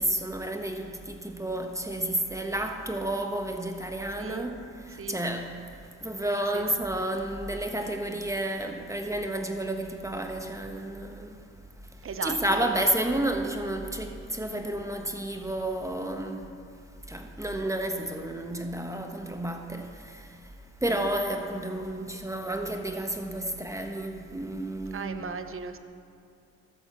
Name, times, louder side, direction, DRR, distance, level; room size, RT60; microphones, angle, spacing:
voice 1, 0.0-4.6 4.9-5.6 6.0-11.4 12.2-16.4 17.1-20.4 20.8-25.2, right 1 dB, 10° right, 1.2 m, -31 dB
voice 2, 4.2-4.5 5.0-5.2 6.5-6.7 12.0-12.8 24.9-25.8, right 6 dB, 45° right, 0.9 m, -36 dB
13.0 x 9.1 x 7.4 m
cardioid pair, 90°, 30 cm